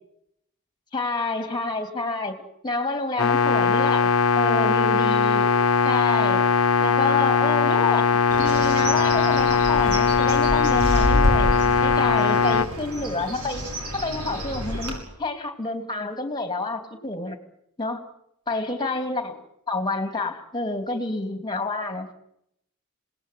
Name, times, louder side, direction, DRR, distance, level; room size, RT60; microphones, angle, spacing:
voice 1, 0.9-4.1 4.3-5.5 5.8-6.5 6.8-8.1 8.4-13.6 13.9-17.4 17.8-18.0 18.5-19.4 19.7-22.1, left 3 dB, 20° left, 8 dB, 3.0 m, -29 dB
sound 1, 3.2-12.7, left 5 dB, 65° left, 1.1 m, -20 dB
Bird, 8.3-14.9, equal, 70° right, 6.8 m, -28 dB
27.0 x 19.0 x 9.5 m, 0.78 s
head